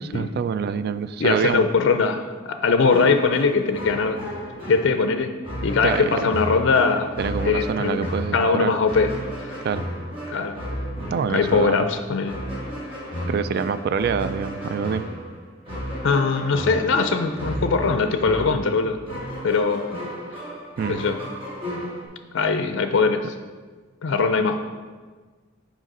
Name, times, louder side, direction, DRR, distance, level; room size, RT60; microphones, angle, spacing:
voice 1, 0.0-1.6 5.8-6.3 7.2-8.7 9.6-9.9 11.1-11.9 13.3-15.1 20.8-21.0, right 6 dB, 50° right, 13 dB, 0.3 m, -26 dB
voice 2, 1.2-2.3 2.6-4.2 4.7-5.3 5.6-7.1 7.5-9.1 9.4-9.6 10.3-10.6 11.3-12.4 16.0-19.0 19.4-19.9 20.9-21.2 22.3-23.3 24.0-24.6, left 4 dB, 65° left, 7 dB, 0.4 m, -21 dB
sound 1, 2.8-22.1, equal, 25° right, 1.8 m, -33 dB
6.3 x 5.0 x 5.3 m, 1.4 s
head